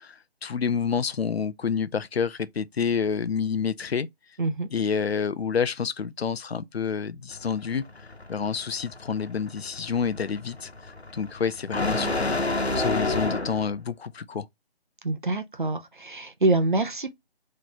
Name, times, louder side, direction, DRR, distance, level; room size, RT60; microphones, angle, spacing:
voice 1, 0.0-4.1 4.7-7.8 8.3-12.4 12.7-14.5, left 6 dB, 75° left, 0.6 m, -28 dB
sound 1, 7.3-13.7, left 2 dB, 90° left, 1.1 m, -30 dB
voice 2, 15.0-17.1, right 2 dB, 50° right, 0.7 m, -25 dB
4.0 x 3.2 x 4.2 m
figure-of-eight pair, 160°, 31 cm